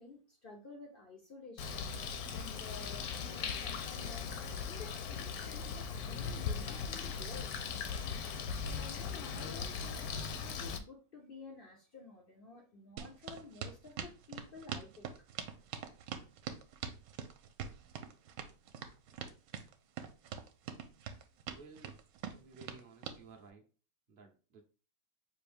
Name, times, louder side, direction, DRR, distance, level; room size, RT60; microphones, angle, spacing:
voice 1, 0.0-1.7 2.0-4.4 4.7-7.5 8.5-15.1, left 4 dB, 85° left, 0.4 m, -52 dB
Bird, 1.6-10.8, left 6 dB, 70° left, 1.0 m, -39 dB
sound 1, 13.0-23.2, right 7 dB, 80° right, 1.2 m, -43 dB
voice 2, 21.5-22.0 22.3-23.6 24.1-24.6, right 4 dB, 65° right, 0.5 m, -56 dB
5.6 x 2.6 x 3.4 m
omnidirectional pair, 1.9 m